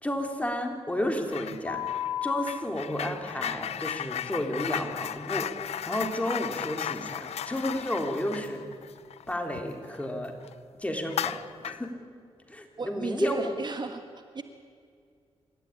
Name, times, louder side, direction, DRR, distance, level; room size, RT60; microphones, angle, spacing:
voice 1, 0.0-1.8 2.2-8.6 9.3-10.3 10.8-11.9 12.5-13.5, left 1 dB, 10° left, 3 dB, 3.5 m, -32 dB
sound 1, 1.3-1.6 1.9-10.0 10.4-10.5 11.1-11.9, left 10 dB, 80° left, 0.6 m, -35 dB
sound 2, 1.7-2.4 5.2-5.3, left 11 dB, 55° left, 3.7 m, -31 dB
voice 2, 12.8-14.4, right 4 dB, 45° right, 7 dB, 1.6 m, -35 dB
26.5 x 14.0 x 9.8 m, 2.2 s
cardioid pair, 75°, 11 cm